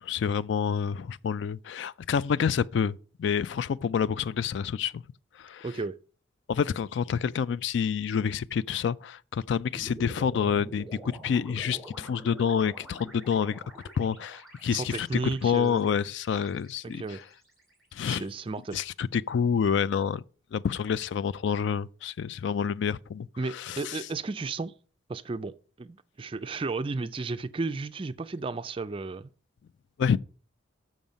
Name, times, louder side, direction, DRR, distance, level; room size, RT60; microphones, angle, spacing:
voice 1, 0.0-5.0 5.4-5.7 6.5-10.9 11.2-13.6 14.0-17.2 17.9-18.2 18.7-20.2 20.5-24.0 30.0-30.2, left 7 dB, 65° left, 0.3 m, -28 dB
voice 2, 5.6-6.0 14.7-15.9 16.8-17.2 18.0-18.8 23.4-24.7 25.1-29.3 30.1-30.2, right 3 dB, 25° right, 0.3 m, -33 dB
sound 1, 9.7-18.0, right 1 dB, ahead, 2.5 m, -46 dB
7.1 x 6.3 x 5.1 m
head